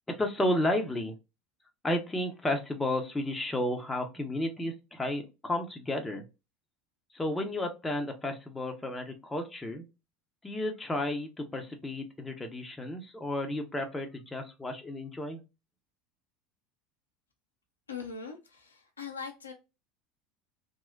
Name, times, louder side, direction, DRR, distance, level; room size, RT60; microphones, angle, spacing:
voice 1, 0.1-1.2 1.8-6.2 7.1-9.8 10.4-15.4, left 1 dB, 10° left, 0.6 m, -32 dB
voice 2, 17.9-19.5, left 5 dB, 85° left, 0.5 m, -41 dB
2.9 x 2.0 x 2.6 m
figure-of-eight pair, 70°, 0 cm